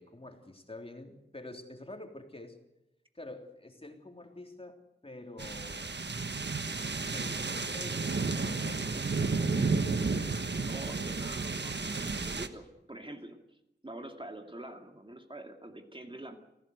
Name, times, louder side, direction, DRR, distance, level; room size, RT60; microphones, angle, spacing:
voice 1, 0.0-2.6 3.1-6.0 7.1-9.8, left 2 dB, 30° left, 4 dB, 3.4 m, -47 dB
sound 1, 5.4-12.5, right 4 dB, 70° right, 1.4 m, -32 dB
voice 2, 10.6-13.4 13.8-16.4, right 1 dB, 30° right, 4 dB, 2.5 m, -45 dB
27.5 x 16.0 x 8.0 m, 0.91 s
wide cardioid pair, 60°, 18 cm